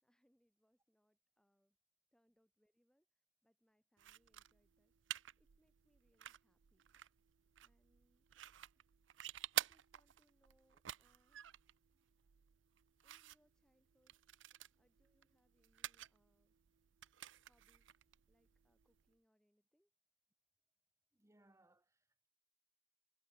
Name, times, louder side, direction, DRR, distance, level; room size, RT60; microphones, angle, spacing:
voice 1, 0.0-1.8 2.1-6.8 7.6-8.3 9.5-11.4 13.0-14.4 14.8-16.5 17.4-18.0 18.3-19.9, equal, 5° left, 4.6 m, -80 dB
sound 1, 4.0-19.1, right 13 dB, 90° right, 0.5 m, -50 dB
voice 2, 21.1-22.3, right 1 dB, 15° right, 1.2 m, -72 dB
head